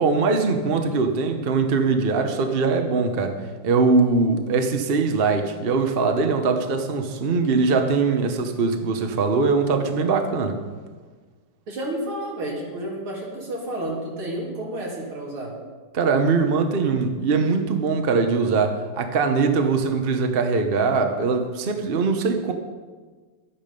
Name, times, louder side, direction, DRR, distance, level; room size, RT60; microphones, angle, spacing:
voice 1, 0.0-10.6 15.9-22.5, right 4 dB, 40° right, 5 dB, 0.9 m, -22 dB
voice 2, 11.7-15.5, right 1 dB, 90° right, -3 dB, 3.6 m, -31 dB
12.5 x 9.6 x 5.3 m, 1.4 s
omnidirectional pair, 2.2 m